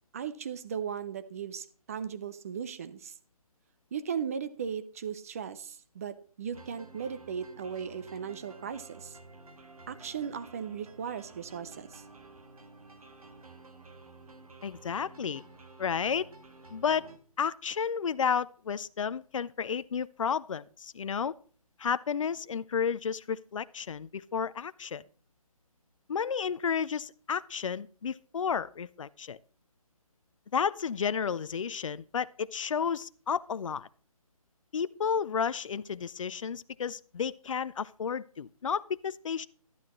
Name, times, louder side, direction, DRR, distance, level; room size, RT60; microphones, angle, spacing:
voice 1, 0.1-3.1 3.9-9.2 9.9-12.0, right 7 dB, 25° right, 12 dB, 0.6 m, -37 dB
sound 1, 6.5-17.2, right 3 dB, 70° right, 1.7 m, -52 dB
voice 2, 14.6-15.4 15.8-16.3 16.7-17.1 17.4-21.3 21.8-25.0 26.1-29.4 30.5-33.9 34.7-39.5, left 7 dB, 60° left, 17 dB, 0.5 m, -32 dB
11.5 x 10.5 x 3.1 m, 0.42 s
figure-of-eight pair, 155°, 19 cm